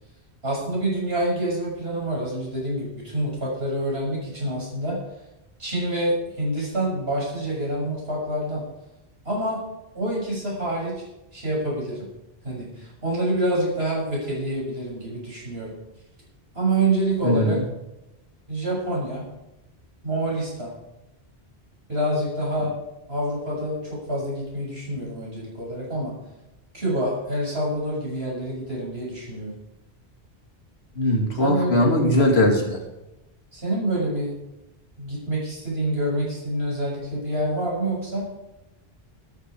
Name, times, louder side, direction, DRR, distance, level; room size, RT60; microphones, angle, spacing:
voice 1, 0.4-5.0 5.6-8.6 9.3-9.6 9.9-11.0 11.3-12.1 12.4-15.7 16.5-17.6 18.5-19.2 20.0-20.7 21.9-22.7 23.1-26.1 26.7-29.5 31.4-31.9 33.5-34.3 35.0-38.2, right 1 dB, 75° right, -4 dB, 7.1 m, -27 dB
voice 2, 17.2-17.6 30.9-32.8, left 1 dB, 80° left, 2 dB, 3.1 m, -20 dB
13.5 x 13.5 x 4.9 m, 0.94 s
omnidirectional pair, 1.1 m